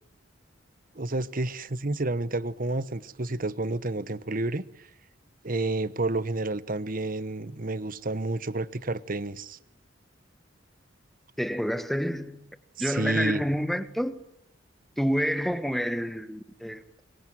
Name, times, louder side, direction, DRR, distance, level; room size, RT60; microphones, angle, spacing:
voice 1, 0.9-4.6 5.4-9.6 12.8-13.4, right 2 dB, 45° right, 1.2 m, -30 dB
voice 2, 11.4-12.4 12.8-14.2 15.0-16.8, equal, ahead, 1.5 m, -28 dB
25.0 x 22.5 x 9.3 m
head